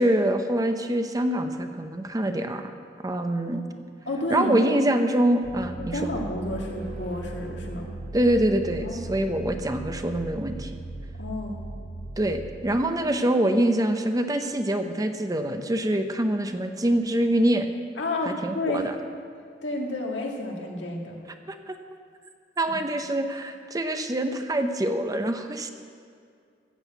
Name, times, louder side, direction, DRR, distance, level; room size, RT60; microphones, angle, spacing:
voice 1, 0.0-2.7 3.0-3.6 4.3-6.0 8.1-10.7 12.2-17.7 18.4-18.8 21.5-21.7 22.6-25.7, right 1 dB, 20° right, 7 dB, 0.7 m, -25 dB
voice 2, 4.1-4.5 5.9-7.9 8.8-9.1 11.2-11.7 18.0-18.9 19.6-21.2 22.7-22.8, left 1 dB, 90° left, 0 dB, 2.0 m, -30 dB
sound 1, 5.4-12.9, right 2 dB, 55° right, 2.9 m, -38 dB
14.5 x 6.2 x 8.1 m, 2.2 s
head